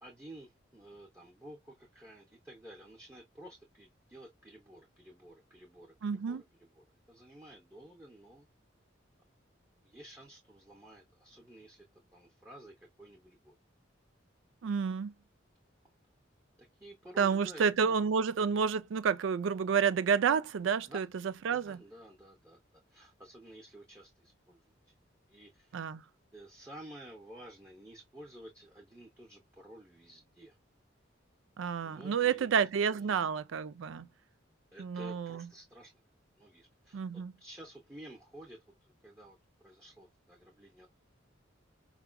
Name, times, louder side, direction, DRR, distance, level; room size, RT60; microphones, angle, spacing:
voice 1, 0.0-8.5 9.8-11.9 12.1-13.5 16.6-18.5 20.9-21.1 21.4-24.9 25.3-25.8 26.3-30.6 31.8-33.1 34.7-35.9 36.4-39.4 39.6-40.9, right 1 dB, 10° right, 0.7 m, -52 dB
voice 2, 6.0-6.4 14.6-15.1 17.2-21.1 21.4-21.8 25.7-26.0 31.6-34.1 34.8-35.5 36.9-37.3, right 6 dB, 80° right, 0.4 m, -30 dB
4.7 x 2.3 x 2.2 m
head